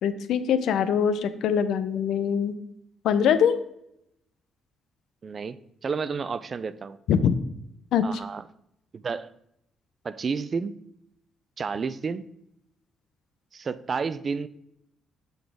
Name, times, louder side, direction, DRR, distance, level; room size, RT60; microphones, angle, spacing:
voice 1, 0.0-2.5 3.0-3.6 7.1-7.4 7.9-8.0, left 8 dB, 80° left, 12 dB, 0.6 m, -23 dB
voice 2, 5.2-7.0 8.0-8.4 8.9-9.3 10.0-10.8 11.6-12.2 13.5-14.5, right 5 dB, 40° right, 15 dB, 0.4 m, -31 dB
7.0 x 3.9 x 4.8 m, 0.76 s
cardioid pair, 90°, 0 cm